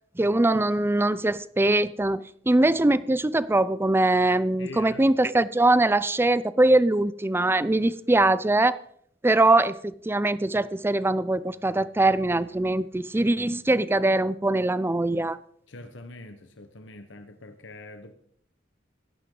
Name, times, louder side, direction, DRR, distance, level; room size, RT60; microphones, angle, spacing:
voice 1, 0.2-8.8 9.2-15.4, right 2 dB, 10° right, 0.4 m, -22 dB
voice 2, 4.6-5.1 15.7-18.1, left 2 dB, 80° left, 1.1 m, -43 dB
17.0 x 12.0 x 3.9 m
head